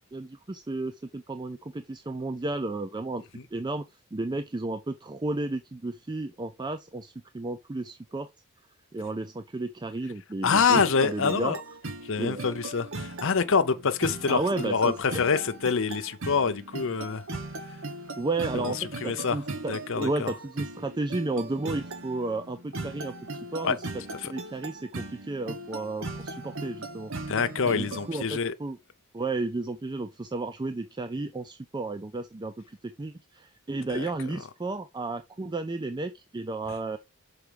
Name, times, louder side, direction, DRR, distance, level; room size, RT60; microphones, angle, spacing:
voice 1, 0.1-3.8 4.1-8.3 8.9-11.5 12.1-12.5 14.3-15.0 18.2-18.8 19.0-23.8 24.2-27.1 27.7-28.8 29.1-32.5 32.8-37.0, right 2 dB, 20° right, 0.4 m, -33 dB
voice 2, 10.4-11.6 12.1-17.2 18.5-18.7 19.0-19.4 19.7-20.3 23.6-23.7 24.2-24.3 27.3-28.5 33.9-34.0, left 5 dB, 60° left, 0.7 m, -26 dB
sound 1, 10.7-28.2, right 2 dB, 60° right, 1.0 m, -38 dB
6.0 x 4.8 x 5.0 m
head